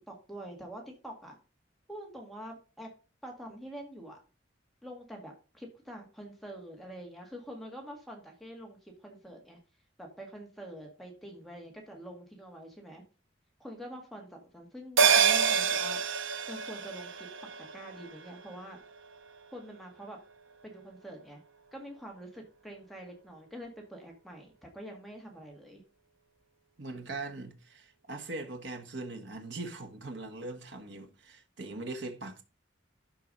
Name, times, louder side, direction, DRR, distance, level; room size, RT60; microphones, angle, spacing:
voice 1, 0.1-1.4 1.9-2.9 3.2-4.2 4.8-9.6 10.0-13.0 13.6-16.0 16.5-18.8 19.5-20.2 20.6-21.4 21.7-25.8, equal, ahead, 1.8 m, -46 dB
sound 1, 15.0-19.7 20.0-20.1, right 6 dB, 90° right, 0.8 m, -28 dB
voice 2, 26.8-32.4, right 2 dB, 65° right, 1.5 m, -41 dB
11.5 x 4.7 x 5.3 m
head